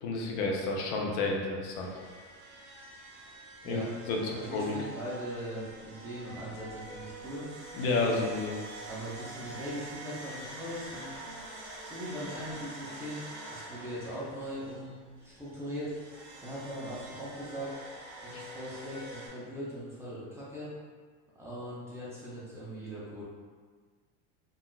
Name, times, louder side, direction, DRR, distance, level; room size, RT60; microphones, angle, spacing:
voice 1, 0.0-1.9 3.6-3.8 4.1-4.7 7.7-8.6 18.3-18.4, left 3 dB, 65° left, 0 dB, 0.6 m, -30 dB
sound 1, 1.7-19.3, right 2 dB, 40° right, 1.1 m, -46 dB
voice 2, 4.3-7.5 8.9-11.2 11.8-15.9 16.4-17.7 18.2-20.7 21.4-23.2, equal, 10° right, -9 dB, 0.5 m, -40 dB
3.8 x 2.3 x 2.2 m, 1.6 s
cardioid pair, 155°, 32 cm